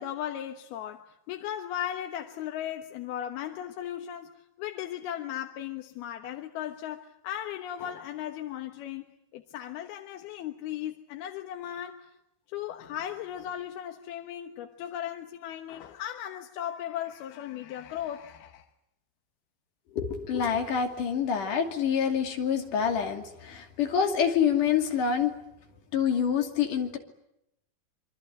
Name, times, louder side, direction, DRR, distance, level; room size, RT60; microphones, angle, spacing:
voice 1, 0.0-9.1 9.3-12.1 12.5-18.6, left 11 dB, 85° left, 3.2 m, -37 dB
voice 2, 19.9-25.3 25.9-27.0, left 7 dB, 60° left, 4.1 m, -26 dB
26.5 x 24.5 x 8.9 m
omnidirectional pair, 4.3 m